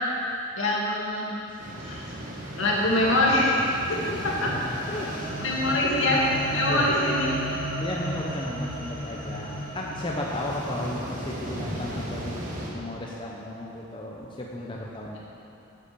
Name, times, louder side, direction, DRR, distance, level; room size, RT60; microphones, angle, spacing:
voice 1, 0.6-1.3 1.8-2.0 2.6-4.5 5.4-7.3, left 1 dB, 75° left, -5 dB, 2.3 m, -24 dB
sound 1, 1.6-12.7, equal, 40° right, 1.4 m, -37 dB
voice 2, 4.4-5.3 6.7-6.9 7.8-15.2, left 1 dB, 25° left, -3 dB, 0.8 m, -34 dB
sound 2, 4.5-12.7, right 1 dB, 10° left, 1.3 m, -36 dB
8.5 x 8.1 x 6.9 m, 2.7 s
head